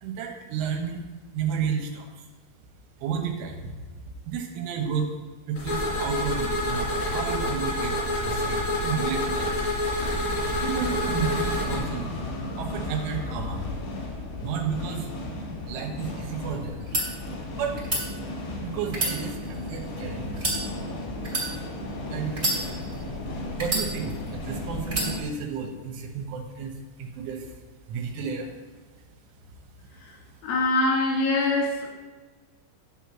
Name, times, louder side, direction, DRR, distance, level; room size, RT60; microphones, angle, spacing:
voice 1, 0.0-1.1 1.3-2.2 3.0-3.9 4.3-5.1 5.5-9.6 10.6-12.2 12.6-13.7 14.4-15.1 15.7-16.8 17.5-17.9 18.6-20.5 22.1-22.4 22.8-22.9 23.4-26.7 27.0-27.5 27.9-28.5 30.3-30.4, right 6 dB, 80° right, 3 dB, 3.5 m, -32 dB
sound 1, 5.6-11.8, left 1 dB, 55° left, 4.5 m, -27 dB
sound 2, 9.7-25.2, left 2 dB, 70° left, 4.7 m, -35 dB
sound 3, 16.8-17.0 17.8-18.0 18.9-19.8 20.3-20.6 21.2-21.5 22.3-23.0 23.6-24.3 24.9-25.1, right 2 dB, 20° right, 2.0 m, -28 dB
voice 2, 30.4-31.9, left 2 dB, 90° left, -1 dB, 4.7 m, -23 dB
11.0 x 4.5 x 7.3 m, 1.3 s
omnidirectional pair, 5.5 m